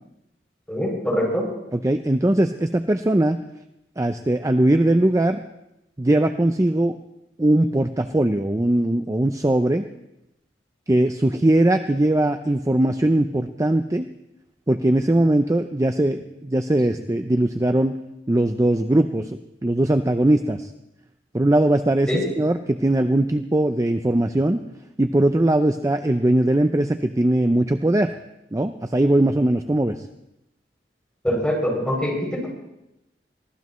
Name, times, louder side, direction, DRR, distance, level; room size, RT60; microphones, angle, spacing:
voice 1, 0.7-1.5 22.1-22.2 31.2-32.5, equal, 5° left, -3 dB, 7.1 m, -23 dB
voice 2, 1.7-3.4 4.0-5.4 6.0-7.0 7.4-9.9 10.9-14.1 14.7-18.0 18.3-20.7 21.3-22.1 22.4-24.6 25.0-28.1 28.5-30.0, right 1 dB, 20° right, 8 dB, 0.5 m, -20 dB
24.5 x 17.0 x 3.2 m, 0.89 s
head